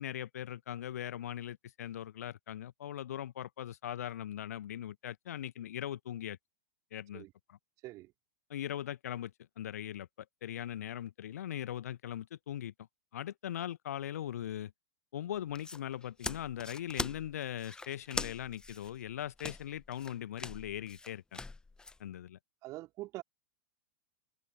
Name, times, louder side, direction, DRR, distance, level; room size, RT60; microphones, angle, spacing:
voice 1, 0.0-6.4 6.9-7.6 8.5-10.1 10.4-12.7 13.1-14.7 15.1-21.4 22.0-22.4, left 11 dB, 60° left, 1.2 m, -40 dB
sound 1, 15.4-22.0, left 3 dB, 10° left, 1.0 m, -42 dB
voice 2, 22.6-23.2, right 18 dB, 35° right, 4.3 m, -44 dB
figure-of-eight pair, 95°, 9 cm